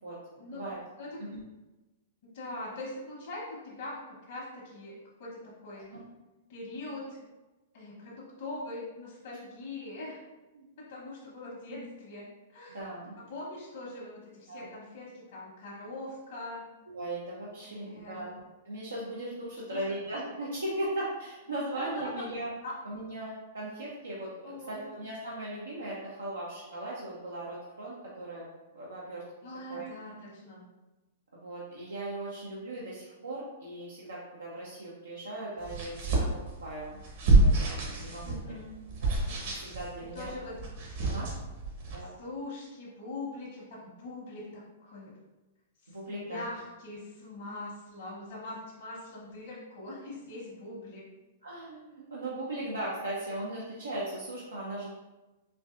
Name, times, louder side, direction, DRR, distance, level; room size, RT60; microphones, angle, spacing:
voice 1, 2.2-4.0 4.3-5.9 6.5-7.2 7.7-10.2 10.8-12.8 13.3-16.6 17.6-18.2 19.5-19.8 21.8-22.1 22.6-22.7 24.4-24.8 29.4-30.6 38.2-38.8 40.1-40.5 42.2-45.1 45.8-51.0, left 2 dB, 70° left, -6 dB, 1.1 m, -42 dB
voice 2, 12.7-13.1 14.5-14.7 16.9-18.3 18.6-22.5 22.8-24.3 24.7-28.5 28.7-29.2 29.7-29.9 31.4-36.3 36.6-36.9 37.2-38.6 39.0-40.3 41.0-41.3 41.9-42.1 45.9-46.4 51.4-54.9, right 1 dB, 90° right, -6 dB, 0.6 m, -38 dB
sound 1, 35.6-41.9, right 2 dB, 60° right, 1.1 m, -28 dB
4.4 x 2.5 x 2.5 m, 1.1 s
hypercardioid pair, 115°, 0 cm